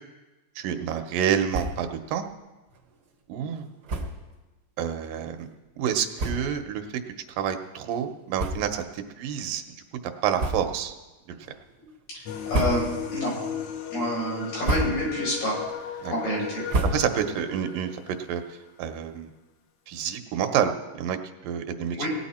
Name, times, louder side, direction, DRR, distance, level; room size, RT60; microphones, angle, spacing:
voice 1, 0.6-2.3 3.3-3.7 4.8-5.5 5.8-6.9 7.4-9.6 10.2-10.9 11.3-11.4 16.0-16.1 16.9-17.9 18.3-19.3 19.9-21.2 21.4-22.1, right 8 dB, 80° right, 7 dB, 2.5 m, -28 dB
sound 1, 1.5-2.0 2.3-2.4 2.7-2.8 3.8-4.3 5.0-5.1 5.8-5.9 6.1-6.7 7.2-7.4 8.3-9.0 9.3-9.5 10.3-10.9 11.4-11.8 12.3-13.2 13.6-14.0 14.4-15.2 15.6-17.4, right 1 dB, 60° right, 1.0 m, -31 dB
voice 2, 12.1-13.3 13.9-15.6 16.1-16.6 21.9-22.1, equal, 90° left, -5 dB, 6.8 m, -28 dB
sound 2, 12.3-18.4, left 8 dB, 70° left, 1.4 m, -36 dB
18.0 x 9.8 x 4.3 m, 1.1 s
omnidirectional pair, 3.8 m